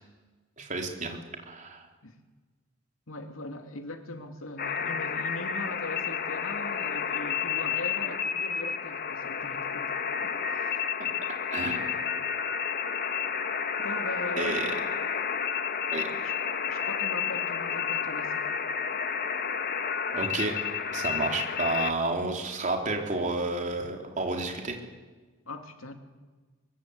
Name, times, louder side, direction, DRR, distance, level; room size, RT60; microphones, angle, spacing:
voice 1, 0.6-1.2 1.5-1.8 11.3-11.8 14.4-14.7 15.9-16.1 20.1-20.5 20.9-24.8, right 2 dB, 40° right, 3 dB, 4.1 m, -31 dB
voice 2, 3.1-9.9 10.2-10.8 11.9-12.0 13.8-14.8 16.2-16.3 16.7-18.5 25.5-25.9, left 2 dB, 85° left, 6 dB, 2.7 m, -40 dB
sound 1, 4.6-21.9, left 7 dB, 50° left, 1.4 m, -31 dB
24.0 x 24.0 x 8.5 m, 1.3 s
head